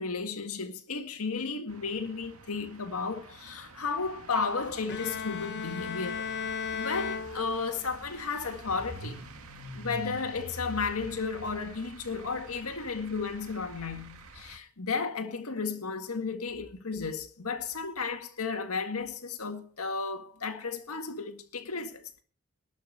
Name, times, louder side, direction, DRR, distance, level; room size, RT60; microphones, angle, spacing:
voice 1, 0.0-6.4 6.7-9.2 9.7-22.2, left 4 dB, 80° left, 1.8 m, -33 dB
sound 1, 1.7-14.6, right 2 dB, 75° right, 2.1 m, -47 dB
Bowed string instrument, 4.9-8.0, left 6 dB, 50° left, 0.8 m, -36 dB
12.5 x 6.3 x 9.3 m
head